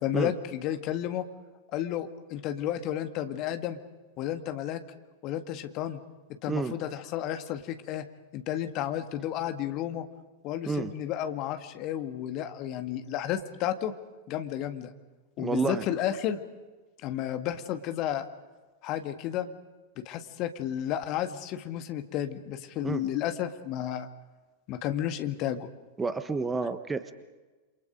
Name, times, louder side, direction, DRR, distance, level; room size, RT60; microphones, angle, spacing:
voice 1, 0.0-1.3 1.7-3.8 4.2-4.8 5.2-6.0 6.4-8.1 8.3-10.0 10.4-13.9 14.3-14.9 15.4-16.4 17.0-18.2 18.8-19.5 20.0-24.1 24.7-25.7, left 11 dB, 40° left, 8 dB, 1.8 m, -32 dB
voice 2, 15.4-15.8 22.8-23.0 26.0-27.1, right 4 dB, 15° right, 11 dB, 1.3 m, -29 dB
28.5 x 27.0 x 5.2 m, 1.2 s
figure-of-eight pair, 90°, 0 cm